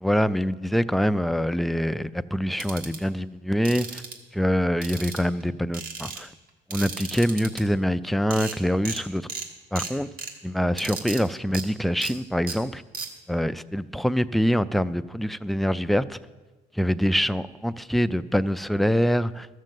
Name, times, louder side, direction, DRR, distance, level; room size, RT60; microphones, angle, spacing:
voice 1, 0.0-4.0 4.3-6.3 6.7-9.3 9.7-10.1 10.4-12.8 13.3-16.2 16.8-19.5, equal, ahead, 13 dB, 0.3 m, -25 dB
sound 1, 2.6-3.0 3.7-4.2 4.8-5.4 5.7-6.2 6.7-7.6 8.0-8.1 8.3-8.6 8.9-9.0 9.3-9.5 9.8-10.3 10.8-11.2 11.5-11.6 12.0-12.1 12.5-12.6 12.9-13.1, right 4 dB, 60° right, 1.7 m, -34 dB
13.5 x 6.4 x 7.5 m, 1.2 s
cardioid pair, 110°, 17 cm